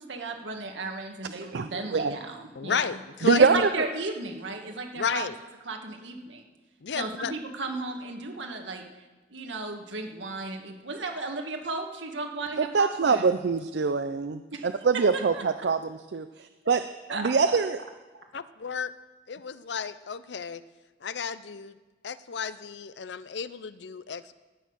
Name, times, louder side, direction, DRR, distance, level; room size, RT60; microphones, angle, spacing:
voice 1, 0.0-2.9 3.4-5.3 5.7-6.4 7.0-8.8 9.3-13.2 14.5-14.7 15.1-15.7 16.7-16.8 17.1-17.3, right 3 dB, 85° right, 3 dB, 1.7 m, -34 dB
voice 2, 1.4-2.1 3.2-3.9 12.6-16.8 17.1-17.8, right 5 dB, 65° right, 10 dB, 0.4 m, -24 dB
voice 3, 2.6-3.7 5.0-5.4 6.8-7.3 18.3-18.9 19.3-20.6 21.0-21.8 22.0-24.3, left 6 dB, 70° left, 15 dB, 0.5 m, -32 dB
13.5 x 9.2 x 6.4 m, 1.2 s
head